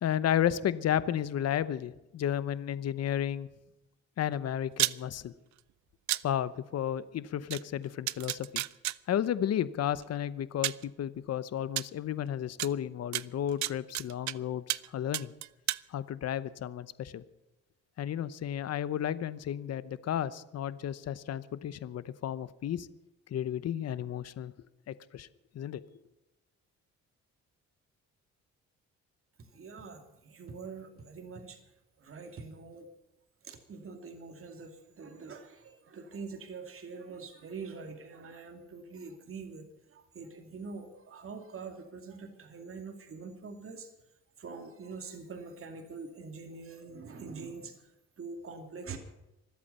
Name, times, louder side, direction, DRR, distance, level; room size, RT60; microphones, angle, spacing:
voice 1, 0.0-3.5 4.2-5.3 6.2-8.6 9.1-15.3 15.9-17.2 18.0-22.9 23.3-24.5 24.9-25.3 25.5-25.8, left 10 dB, 55° left, 16 dB, 0.8 m, -33 dB
sound 1, 4.7-5.0 6.1-6.2 7.5-7.6 8.1-9.0 10.0-10.1 10.6-10.8 11.8-11.9 12.6-12.7 13.1-14.3 14.7-14.9 15.1-15.8, right 15 dB, 70° right, 0.5 m, -31 dB
voice 2, 29.5-31.6 32.0-32.9 33.4-43.9 44.4-47.7 48.2-49.0, right 4 dB, 45° right, 4 dB, 2.6 m, -44 dB
25.0 x 8.4 x 5.6 m, 0.95 s
cardioid pair, 90°, 30 cm